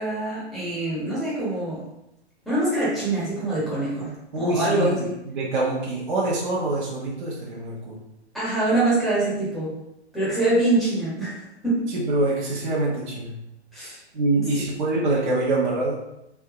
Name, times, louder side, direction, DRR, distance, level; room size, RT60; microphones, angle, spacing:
voice 1, 0.0-1.8 2.4-5.1 8.3-9.7 10.1-11.9 13.7-14.0 14.4-14.5, right 2 dB, ahead, -10 dB, 1.0 m, -24 dB
voice 2, 4.3-8.0 11.9-13.4 14.1-16.0, right 2 dB, 45° right, -5 dB, 0.9 m, -25 dB
3.5 x 2.7 x 3.6 m, 0.83 s
hypercardioid pair, 155°, 34 cm